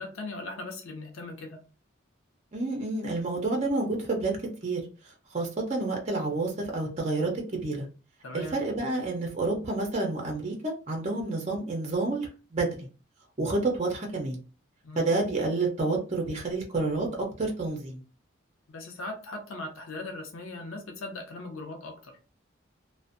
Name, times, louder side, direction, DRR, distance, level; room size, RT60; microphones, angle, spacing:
voice 1, 0.0-1.6 8.2-8.6 14.8-15.1 18.7-22.2, left 2 dB, 90° left, 3 dB, 0.6 m, -39 dB
voice 2, 2.5-4.8 5.3-7.9 8.3-12.8 13.4-14.4 15.0-18.0, right 3 dB, 35° right, 1 dB, 0.5 m, -29 dB
2.5 x 2.1 x 2.4 m, 0.34 s
head